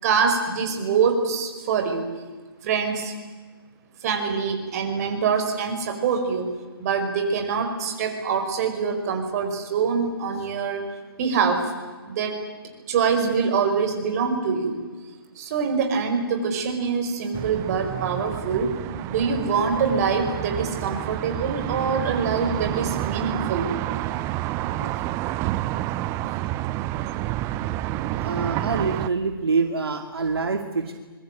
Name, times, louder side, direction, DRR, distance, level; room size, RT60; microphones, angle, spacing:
voice 1, 0.0-2.1 2.6-3.1 4.0-6.5 6.8-10.9 11.2-11.6 12.1-12.4 12.9-14.8 15.4-18.7 19.1-23.7 24.7-24.8, right 5 dB, 40° right, 5 dB, 5.4 m, -24 dB
sound 1, 17.3-29.1, right 15 dB, 20° right, 0.8 m, -29 dB
voice 2, 28.2-30.9, right 4 dB, 80° right, 6 dB, 2.3 m, -25 dB
25.0 x 22.5 x 9.0 m, 1.4 s
figure-of-eight pair, 140°, 13 cm